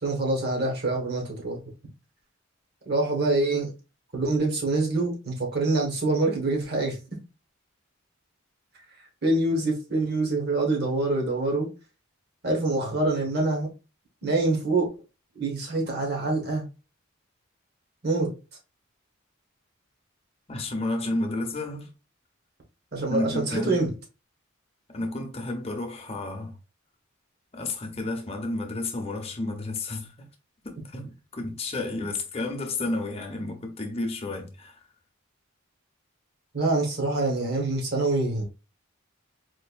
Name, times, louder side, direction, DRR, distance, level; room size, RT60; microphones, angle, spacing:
voice 1, 0.0-1.6 2.8-3.7 4.1-7.0 9.2-11.7 12.4-13.7 14.2-14.9 15.3-16.6 18.0-18.3 22.9-23.9 36.5-38.4, right 2 dB, 50° right, 1.3 m, -25 dB
voice 2, 20.5-21.9 23.1-23.8 24.9-26.6 27.5-30.3 30.6-34.8, left 2 dB, 30° left, 0.7 m, -31 dB
4.5 x 2.6 x 2.4 m
head